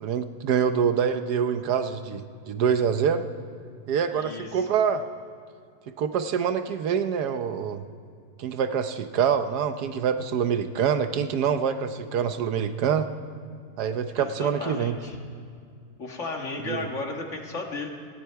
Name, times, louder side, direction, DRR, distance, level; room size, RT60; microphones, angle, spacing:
voice 1, 0.0-3.2 3.9-5.0 6.0-7.8 8.4-13.1 13.8-15.0 16.7-16.9, right 7 dB, 75° right, 9 dB, 1.3 m, -25 dB
voice 2, 4.1-4.7 14.1-15.2 16.0-17.9, left 3 dB, 45° left, 2 dB, 1.8 m, -34 dB
18.5 x 17.0 x 4.6 m, 2.2 s
omnidirectional pair, 1.8 m